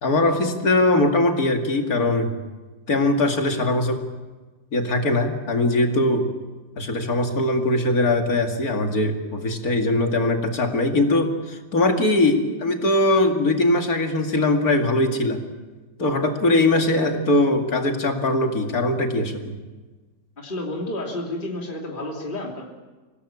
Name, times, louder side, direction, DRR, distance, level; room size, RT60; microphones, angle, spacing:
voice 1, 0.0-2.4 2.9-4.1 4.7-6.3 6.8-15.4 16.0-19.6, left 2 dB, 55° left, 4 dB, 2.7 m, -21 dB
voice 2, 20.4-22.6, left 1 dB, 25° left, -1 dB, 3.0 m, -30 dB
25.5 x 18.0 x 8.6 m, 1.3 s
omnidirectional pair, 1.9 m